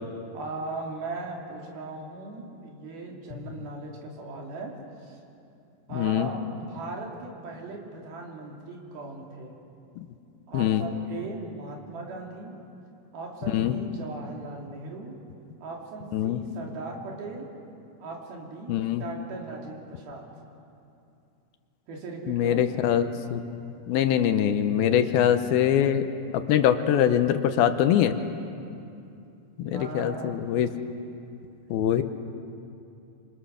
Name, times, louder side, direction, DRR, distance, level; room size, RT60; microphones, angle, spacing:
voice 1, 0.3-4.7 5.0-5.2 5.9-9.5 10.5-12.5 13.1-15.2 15.6-17.5 18.0-20.2 21.9-22.6 24.9-25.2 29.6-30.4, right 3 dB, 75° right, -1 dB, 4.7 m, -38 dB
voice 2, 5.9-6.3 10.5-10.8 13.5-13.8 16.1-16.4 18.7-19.0 22.3-23.6 23.9-26.0 26.5-28.2 29.6-30.7 31.7-32.0, left 10 dB, 80° left, 9 dB, 2.8 m, -23 dB
26.5 x 26.0 x 6.5 m, 2.6 s
omnidirectional pair, 4.4 m